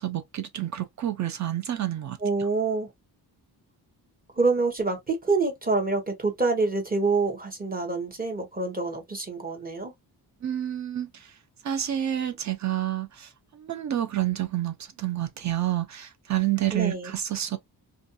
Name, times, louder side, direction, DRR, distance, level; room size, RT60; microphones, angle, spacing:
voice 1, 0.0-2.2 10.4-11.3 11.6-17.6, right 12 dB, 45° right, 0.6 m, -29 dB
voice 2, 2.2-2.9 4.4-9.9 16.7-17.1, right 3 dB, 20° right, 0.9 m, -26 dB
2.5 x 2.3 x 2.6 m
wide cardioid pair, 120°, 40 cm